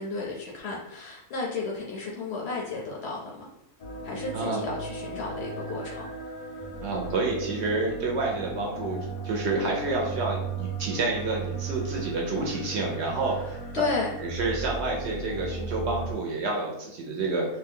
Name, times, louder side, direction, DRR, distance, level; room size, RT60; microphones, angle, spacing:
voice 1, 0.0-3.5 4.0-6.1 13.7-14.1, left 3 dB, 65° left, -2 dB, 0.7 m, -33 dB
sound 1, 3.8-16.1, right 4 dB, 85° left, 1.1 m, -36 dB
voice 2, 6.8-9.0 9.2-13.4 14.3-17.5, right 3 dB, 65° right, -1 dB, 0.8 m, -29 dB
2.6 x 2.2 x 3.4 m, 0.80 s
omnidirectional pair, 1.4 m